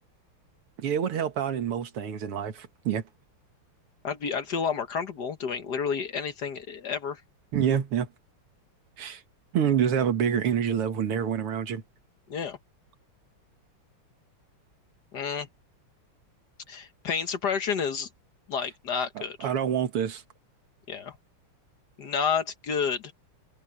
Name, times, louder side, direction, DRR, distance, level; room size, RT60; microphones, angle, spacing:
voice 1, 0.8-3.0 7.5-8.1 9.0-9.2 9.5-11.8 19.2-20.2, right 8 dB, 90° right, 2.4 m, -27 dB
voice 2, 4.0-7.2 12.3-12.6 15.1-15.5 16.7-18.1 18.5-19.5 20.9-21.1 22.0-23.1, left 6 dB, 55° left, 1.6 m, -30 dB
omnidirectional pair, 2.4 m